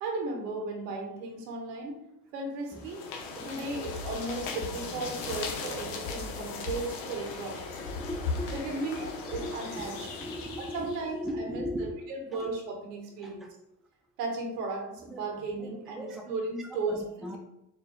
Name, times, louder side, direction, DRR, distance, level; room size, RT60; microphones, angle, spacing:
voice 1, 0.0-2.0 2.3-3.0 3.4-7.7 8.5-10.1 10.6-13.4 14.2-17.0, right 3 dB, 90° right, 2 dB, 0.8 m, -35 dB
sound 1, 2.7-11.1, left 4 dB, 75° left, 0.8 m, -37 dB
voice 2, 7.8-12.0 12.3-12.5 13.2-13.5 15.0-16.2 16.6-17.4, equal, ahead, 1 dB, 0.5 m, -39 dB
4.4 x 2.3 x 3.3 m, 0.90 s
hypercardioid pair, 60°, 47 cm